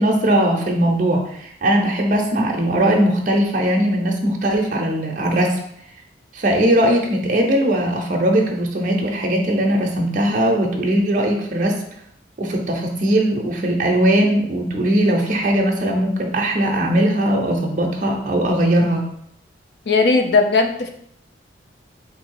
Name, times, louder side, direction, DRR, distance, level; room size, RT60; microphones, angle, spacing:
voice 1, 0.0-5.6 6.3-11.8 12.4-19.0, right 1 dB, 45° right, 0 dB, 0.6 m, -19 dB
voice 2, 19.9-20.9, left 3 dB, 65° left, 5 dB, 0.5 m, -17 dB
3.9 x 2.6 x 4.6 m, 0.70 s
head